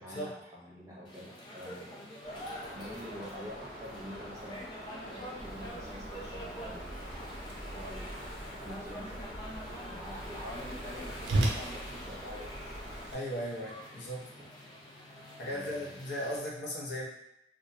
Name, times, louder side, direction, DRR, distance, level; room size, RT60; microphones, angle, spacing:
voice 1, 0.0-2.0 2.7-8.2 8.5-12.5 14.1-14.2 15.4-15.9, equal, 15° right, -7 dB, 0.6 m, -46 dB
sound 1, 1.0-16.4, equal, 25° left, 0.4 m, -47 dB
sound 2, 2.2-13.1, equal, 50° left, 0.9 m, -46 dB
Whoosh swoosh swish, 5.4-13.1, right 1 dB, 80° right, 0.4 m, -38 dB
voice 2, 13.1-14.2 15.4-17.1, equal, 75° left, -3 dB, 0.6 m, -37 dB
2.3 x 2.1 x 2.6 m, 0.85 s
head